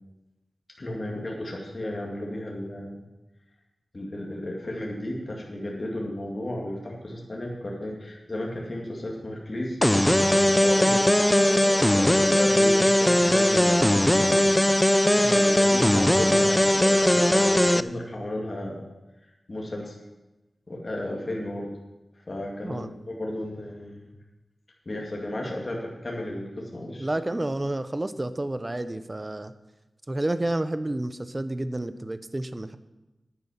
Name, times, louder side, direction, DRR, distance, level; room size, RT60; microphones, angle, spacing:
voice 1, 0.8-3.0 3.9-9.8 10.5-11.1 11.4-13.7 15.1-18.9 19.5-19.9 20.7-21.7 22.3-24.1 24.9-27.1, left 1 dB, 40° left, -2 dB, 2.0 m, -34 dB
sound 1, 9.8-17.8, left 1 dB, 10° left, 0.3 m, -20 dB
voice 2, 27.0-29.5 30.1-32.8, right 1 dB, 25° right, 12 dB, 0.7 m, -30 dB
9.7 x 9.5 x 5.7 m, 1.0 s
wide cardioid pair, 80°, 0 cm